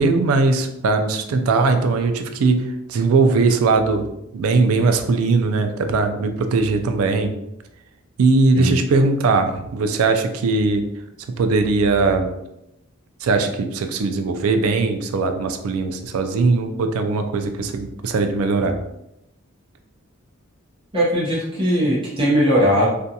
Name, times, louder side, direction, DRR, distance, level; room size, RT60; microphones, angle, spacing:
voice 1, 0.0-4.1 4.3-7.4 8.2-10.9 11.4-12.3 13.2-18.8, right 3 dB, 80° right, 7 dB, 0.4 m, -19 dB
voice 2, 20.9-22.9, equal, 25° right, -7 dB, 0.7 m, -19 dB
2.5 x 2.2 x 2.7 m, 0.84 s
head